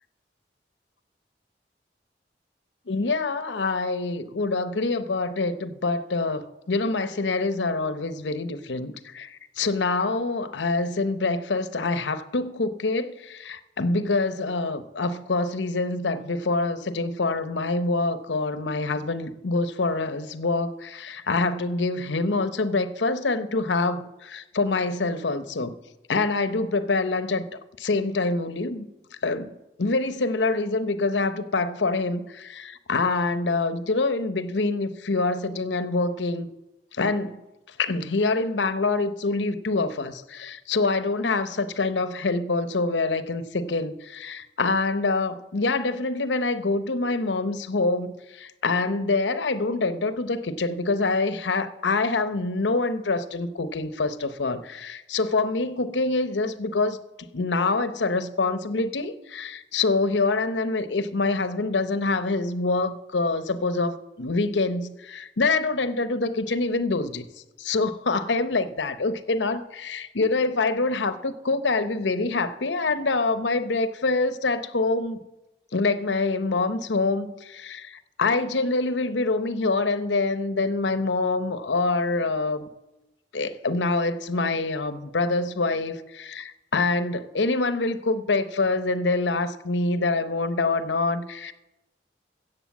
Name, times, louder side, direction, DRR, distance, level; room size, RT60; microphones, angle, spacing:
voice 1, 2.9-25.7 26.1-27.4 27.8-28.9 29.2-36.5 37.0-37.4 37.8-57.0 57.3-67.2 67.6-75.2 75.7-82.7 83.3-91.5, left 3 dB, 85° left, 0.8 m, -25 dB
14.5 x 7.9 x 7.2 m
head